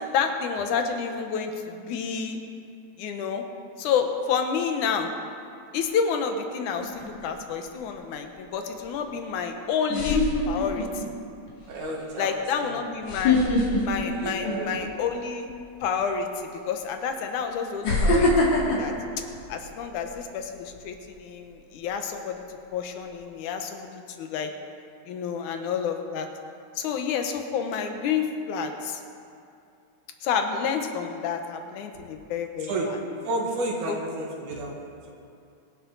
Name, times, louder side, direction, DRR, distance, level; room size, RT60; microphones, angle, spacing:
voice 1, 0.1-2.4 3.0-3.4 3.8-5.1 5.7-11.1 12.2-13.4 13.8-15.5 15.8-18.9 19.5-22.4 22.7-24.5 25.1-26.3 26.8-29.0 30.2-32.7 33.9-34.0, left 6 dB, 80° left, 5 dB, 2.5 m, -29 dB
sound 1, 6.8-7.3 9.2-9.3 9.9-11.0 11.5-11.7 13.0-14.9 15.3-15.5 16.5-16.6 17.8-20.1 20.5-20.8, left 2 dB, 65° left, 3.6 m, -23 dB
voice 2, 11.7-12.8 14.1-14.7 31.9-32.0 32.7-32.9 33.2-35.1, right 2 dB, 80° right, -1 dB, 3.0 m, -31 dB
23.5 x 10.5 x 4.1 m, 2.5 s
omnidirectional pair, 3.5 m